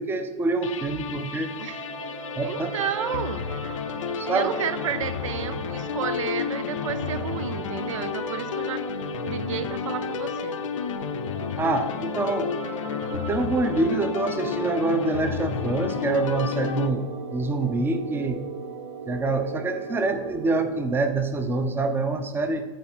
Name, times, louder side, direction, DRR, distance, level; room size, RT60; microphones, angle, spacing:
voice 1, 0.0-1.5 2.4-2.7 4.1-4.5 11.6-12.5 13.1-18.4 19.1-22.6, right 3 dB, 15° right, 7 dB, 0.6 m, -26 dB
sound 1, 0.6-16.9, left 8 dB, 90° left, 0.6 m, -32 dB
sound 2, 1.5-20.8, right 4 dB, 50° right, 1.5 m, -38 dB
voice 2, 2.4-3.7 4.2-8.9 9.2-10.6, right 9 dB, 85° right, 13 dB, 0.5 m, -32 dB
7.5 x 4.1 x 4.4 m, 1.4 s
hypercardioid pair, 125°, 16 cm